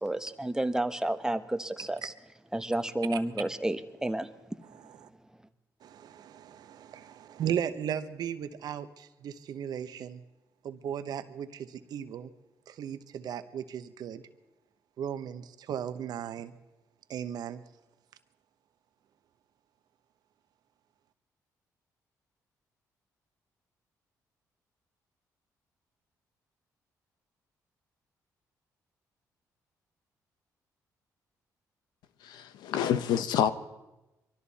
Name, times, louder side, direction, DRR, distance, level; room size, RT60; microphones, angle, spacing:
voice 1, 0.0-2.1 2.5-4.3, right 1 dB, 10° right, 1.0 m, -31 dB
voice 2, 4.6-5.1 5.8-10.2 10.6-12.3 12.7-14.3 15.0-16.5 17.1-17.6, right 9 dB, 70° right, 1.0 m, -36 dB
voice 3, 32.2-33.5, left 9 dB, 85° left, 0.8 m, -27 dB
23.5 x 13.5 x 4.2 m
cardioid pair, 75°, 7 cm